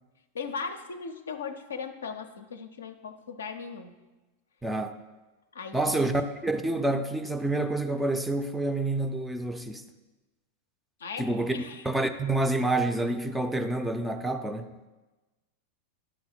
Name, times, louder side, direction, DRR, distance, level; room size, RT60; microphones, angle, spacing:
voice 1, 0.3-3.9 5.5-6.1 11.0-11.8, left 5 dB, 70° left, 7 dB, 0.5 m, -38 dB
voice 2, 4.6-5.0 5.7-9.9 11.2-14.8, right 2 dB, 5° right, 7 dB, 0.4 m, -28 dB
11.5 x 4.0 x 4.3 m, 1.2 s
figure-of-eight pair, 90°, 0 cm